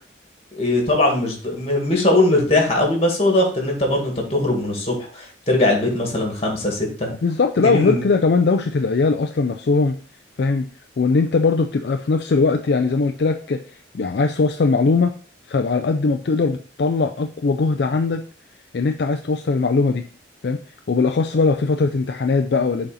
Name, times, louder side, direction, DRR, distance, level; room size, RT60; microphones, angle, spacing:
voice 1, 0.6-7.1 7.6-8.1, left 2 dB, 35° left, 0 dB, 2.0 m, -20 dB
voice 2, 7.2-10.0 10.4-10.7 11.0-13.6 13.9-15.2 15.5-18.2 18.7-20.1 20.4-20.6 20.9-22.9, left 4 dB, 60° left, 6 dB, 0.4 m, -20 dB
6.9 x 4.0 x 4.1 m, 0.42 s
head